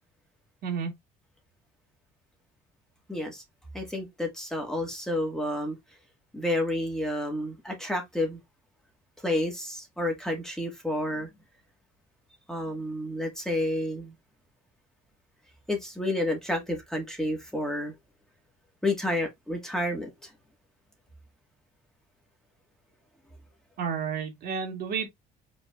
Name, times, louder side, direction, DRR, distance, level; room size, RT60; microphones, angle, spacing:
voice 1, 3.1-3.4 3.7-5.8 6.3-8.4 9.2-11.3 12.5-14.1 15.7-17.9 18.8-20.3, left 1 dB, 5° left, 1.8 m, -30 dB
voice 2, 23.8-25.1, right 6 dB, 65° right, 2.3 m, -31 dB
5.1 x 3.9 x 2.4 m
cardioid pair, 110°, 17 cm